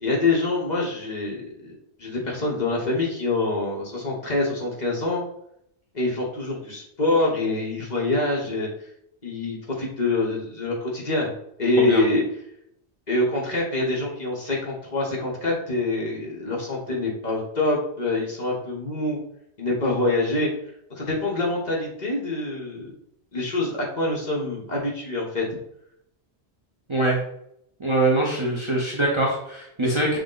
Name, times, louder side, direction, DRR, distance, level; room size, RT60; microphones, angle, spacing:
voice 1, 0.0-1.7 2.0-5.2 5.9-8.7 9.2-11.3 11.6-12.2 13.1-19.2 19.6-20.5 20.9-22.9 23.3-25.4, left 2 dB, 40° left, -3 dB, 1.2 m, -25 dB
voice 2, 27.8-30.2, right 2 dB, 30° right, -3 dB, 0.7 m, -23 dB
6.3 x 2.1 x 3.8 m, 0.74 s
omnidirectional pair, 1.2 m